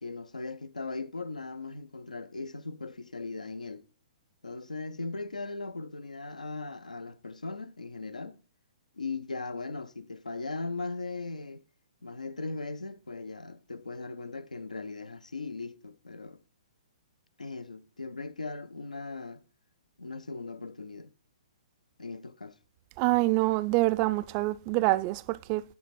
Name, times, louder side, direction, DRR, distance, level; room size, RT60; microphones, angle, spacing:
voice 1, 0.0-3.8 4.4-8.4 8.9-11.6 12.0-16.4 17.4-19.4 20.0-21.1 22.0-22.6, left 3 dB, 90° left, 0.5 m, -38 dB
voice 2, 23.0-25.6, right 20 dB, 30° right, 0.3 m, -26 dB
8.6 x 3.3 x 5.9 m
figure-of-eight pair, 125°, 4 cm